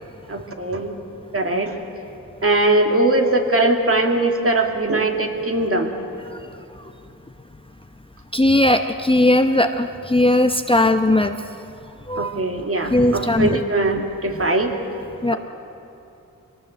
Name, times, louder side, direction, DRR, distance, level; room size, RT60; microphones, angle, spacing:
voice 1, 0.3-1.0 1.3-1.8 2.4-5.9 12.2-14.7, right 2 dB, 40° right, 3 dB, 2.4 m, -20 dB
voice 2, 8.3-11.4 12.1-12.3 12.9-13.6 15.2-15.3, left 1 dB, 15° left, 7 dB, 0.9 m, -18 dB
23.5 x 18.5 x 7.8 m, 2.7 s
cardioid pair, 60°, 34 cm